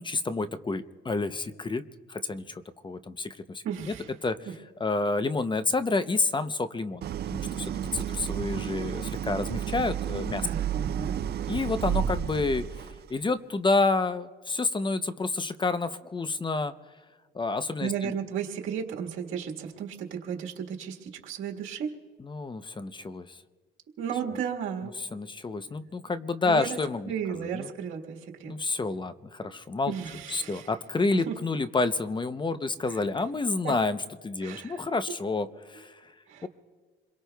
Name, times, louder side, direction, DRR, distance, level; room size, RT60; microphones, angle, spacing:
voice 1, 0.0-1.8 2.1-3.6 4.2-4.4 4.8-10.5 11.5-16.7 17.3-18.1 22.2-23.4 25.1-27.1 27.5-27.7 28.5-29.9 30.3-34.0 34.2-36.1 36.4-36.5, left 3 dB, 25° left, 11 dB, 0.7 m, -29 dB
voice 2, 3.6-4.1 4.4-4.5 10.4-11.2 17.8-21.9 24.0-25.0 26.4-26.8 27.1-28.5 29.9-30.7 31.1-31.3 32.9-33.0 33.6-33.7 34.4-34.8 36.3-36.5, right 8 dB, 85° right, 0 dB, 1.6 m, -34 dB
Idling, 7.0-13.1, right 9 dB, 55° right, 0.4 m, -32 dB
28.0 x 22.5 x 2.3 m, 1.5 s
cardioid pair, 90°, 20 cm